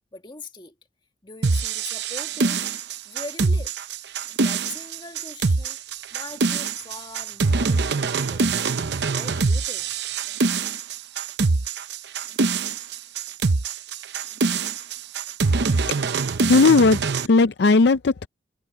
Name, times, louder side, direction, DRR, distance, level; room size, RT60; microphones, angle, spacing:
voice 1, 0.1-0.7 1.2-2.6 3.0-3.7 4.4-5.8 6.1-8.5 9.0-9.9, left 3 dB, 25° left, 1.6 m, -41 dB
sound 1, 1.4-17.3, right 4 dB, 70° right, 0.7 m, -24 dB
voice 2, 16.5-18.3, left 3 dB, 65° left, 0.5 m, -17 dB
head